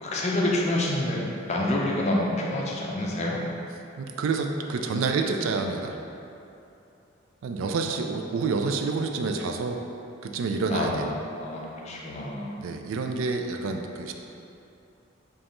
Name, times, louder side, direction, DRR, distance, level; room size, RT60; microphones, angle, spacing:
voice 1, 0.0-3.4 10.7-12.6, left 1 dB, 30° left, -2 dB, 0.4 m, -28 dB
voice 2, 4.0-6.0 7.4-9.8 10.2-11.1 12.6-14.1, right 4 dB, 75° right, 4 dB, 0.3 m, -28 dB
5.1 x 2.4 x 3.0 m, 2.7 s
head